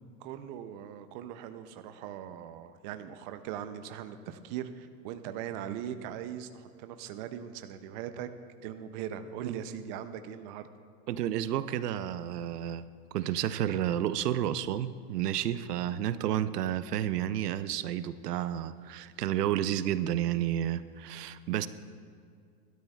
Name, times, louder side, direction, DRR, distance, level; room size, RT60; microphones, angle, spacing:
voice 1, 0.2-8.3 8.6-10.7, right 10 dB, 30° right, 10 dB, 0.5 m, -40 dB
voice 2, 11.1-12.8 13.1-21.7, right 11 dB, 85° right, 14 dB, 0.7 m, -31 dB
20.5 x 12.5 x 2.3 m, 2.2 s
supercardioid pair, 145°, 46 cm